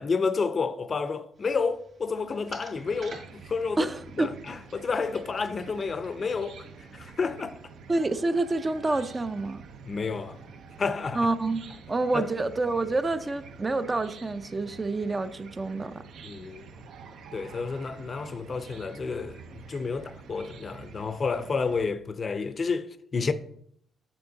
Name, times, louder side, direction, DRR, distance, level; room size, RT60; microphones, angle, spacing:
voice 1, 0.0-3.9 4.2-6.7 6.9-7.6 9.9-10.4 10.8-11.3 12.1-12.3 16.2-16.7 17.3-23.3, left 4 dB, 40° left, 0.5 m, -30 dB
sound 1, 1.3-7.1, right 3 dB, 50° right, 2.0 m, -52 dB
Chicken rooster / Cricket, 2.7-21.8, right 5 dB, 75° right, 0.7 m, -48 dB
voice 2, 3.8-4.4 7.9-9.6 11.1-16.0, right 2 dB, 25° right, 0.4 m, -28 dB
6.9 x 5.6 x 3.9 m
cardioid pair, 90°, 0 cm